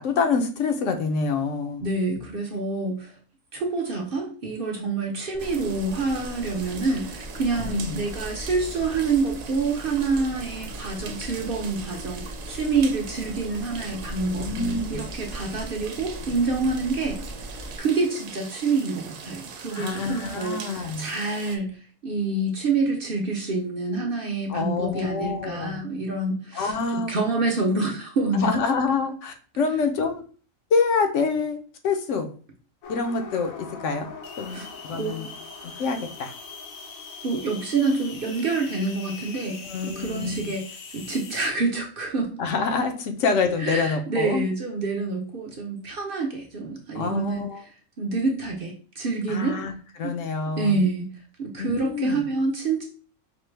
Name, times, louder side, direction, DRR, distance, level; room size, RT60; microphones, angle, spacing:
voice 1, 0.0-1.8 7.6-8.0 14.2-15.1 19.7-21.1 24.5-25.8 26.5-27.1 28.3-30.2 30.7-31.6 31.8-32.3 32.9-34.1 34.4-35.3 35.6-36.3 39.6-40.5 42.4-44.4 46.9-47.7 49.3-49.7 50.0-50.8 51.6-52.2, left 4 dB, 70° left, 5 dB, 0.9 m, -26 dB
voice 2, 1.8-3.1 3.5-14.5 14.9-17.2 17.8-28.5 34.5-35.4 37.2-40.7 40.9-42.3 43.6-47.4 48.0-49.6 50.0-50.1 50.6-51.1 51.4-52.8, right 3 dB, 50° right, 0 dB, 0.8 m, -27 dB
sound 1, 5.3-17.8, equal, 35° left, 0.7 m, -39 dB
sound 2, 5.4-21.6, right 6 dB, 85° right, 1.0 m, -42 dB
sound 3, 32.8-41.5, left 4 dB, 90° left, 1.2 m, -41 dB
5.1 x 2.1 x 3.2 m, 0.40 s
omnidirectional pair, 1.4 m